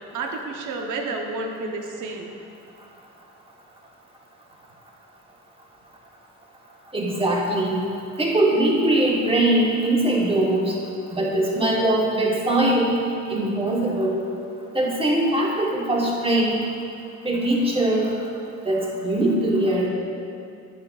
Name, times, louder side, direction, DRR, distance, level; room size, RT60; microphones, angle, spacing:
voice 1, 0.1-2.3, right 3 dB, 80° right, 2 dB, 0.8 m, -30 dB
voice 2, 6.9-7.8 8.2-10.7 11.1-13.0 13.3-14.2 14.7-16.6 17.2-18.1 18.6-19.9, right 1 dB, 20° right, -3 dB, 1.3 m, -21 dB
9.6 x 5.7 x 2.4 m, 2.5 s
cardioid pair, 90°, 30 cm